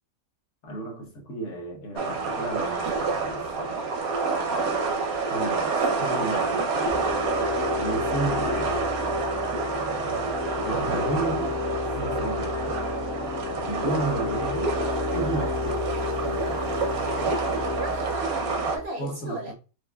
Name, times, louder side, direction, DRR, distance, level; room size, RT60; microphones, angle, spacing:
voice 1, 0.6-3.8 5.3-7.0 7.8-8.8 10.5-11.6 11.9-12.8 13.6-14.8 15.1-15.9 16.2-16.9 19.0-19.5, right 2 dB, 60° left, 1.2 m, -33 dB
sound 1, 2.0-18.8, right 4 dB, 80° right, 1.2 m, -28 dB
sound 2, 6.9-18.8, left 4 dB, 85° left, 1.3 m, -32 dB
voice 2, 7.4-8.0 17.8-19.5, right 2 dB, 60° right, 0.8 m, -37 dB
4.7 x 2.5 x 2.2 m
omnidirectional pair, 1.5 m